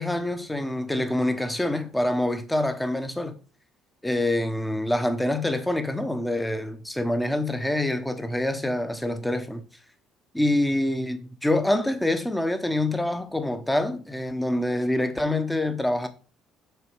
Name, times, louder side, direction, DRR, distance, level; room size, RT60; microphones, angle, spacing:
voice 1, 0.0-3.3 4.0-9.6 10.3-16.1, left 1 dB, 5° left, 1.0 m, -26 dB
6.9 x 4.1 x 6.2 m
cardioid pair, 130°, 0 cm